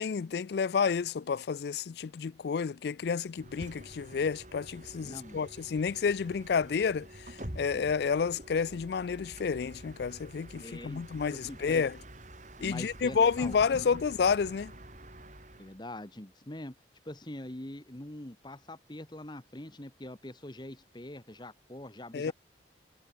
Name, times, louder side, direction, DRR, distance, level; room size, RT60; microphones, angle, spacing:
voice 1, 0.0-12.0 12.6-14.7 22.1-22.3, left 6 dB, 55° left, 0.4 m, -30 dB
Bus, 3.3-15.8, right 1 dB, 40° right, 6.3 m, -47 dB
voice 2, 5.0-5.4 10.6-11.0 11.3-11.8 12.6-13.5 13.8-13.9 15.6-16.7 17.0-22.3, left 1 dB, 25° left, 1.4 m, -43 dB
head